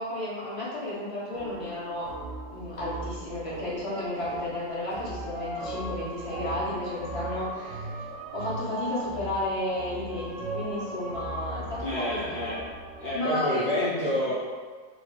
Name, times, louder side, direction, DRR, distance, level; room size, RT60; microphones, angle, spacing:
voice 1, 0.0-2.1 2.5-7.9 8.3-12.2 13.1-13.7, left 1 dB, 25° left, -8 dB, 0.8 m, -32 dB
sound 1, 1.3-13.2, right 2 dB, 85° right, 0.7 m, -38 dB
voice 2, 11.8-12.6 13.0-14.3, left 1 dB, 65° left, -9 dB, 0.4 m, -28 dB
4.3 x 2.0 x 4.5 m, 1.5 s
omnidirectional pair, 2.0 m